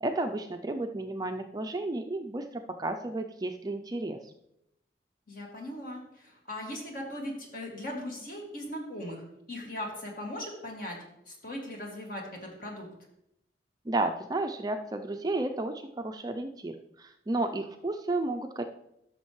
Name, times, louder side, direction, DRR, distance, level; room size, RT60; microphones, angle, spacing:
voice 1, 0.0-4.3 13.9-18.6, right 2 dB, 20° right, 6 dB, 0.4 m, -32 dB
voice 2, 5.3-11.0 11.3-12.9, left 1 dB, 50° left, 0 dB, 2.0 m, -39 dB
12.5 x 6.4 x 3.1 m, 0.80 s
head